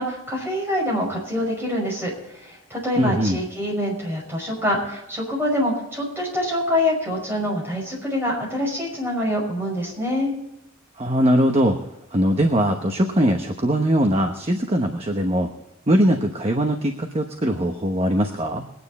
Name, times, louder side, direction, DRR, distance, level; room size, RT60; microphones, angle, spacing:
voice 1, 0.0-10.3, left 1 dB, 10° right, -3 dB, 5.6 m, -25 dB
voice 2, 3.0-3.4 11.0-11.8 12.1-15.5 15.9-18.6, equal, 30° right, 4 dB, 1.0 m, -21 dB
21.5 x 9.7 x 4.2 m, 0.88 s
head